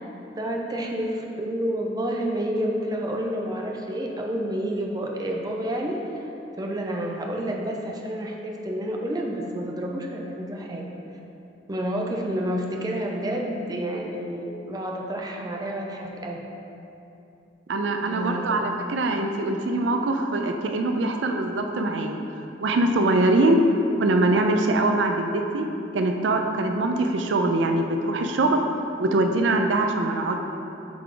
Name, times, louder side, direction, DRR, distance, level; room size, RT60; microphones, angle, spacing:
voice 1, 0.3-6.1 6.6-10.8 11.7-16.4 18.1-18.7, right 1 dB, 20° right, 0 dB, 0.5 m, -29 dB
voice 2, 17.7-22.2 22.6-23.6 24.0-25.7 25.9-28.6 29.0-30.4, right 2 dB, 85° right, 4 dB, 0.5 m, -23 dB
8.4 x 3.5 x 3.8 m, 2.8 s
head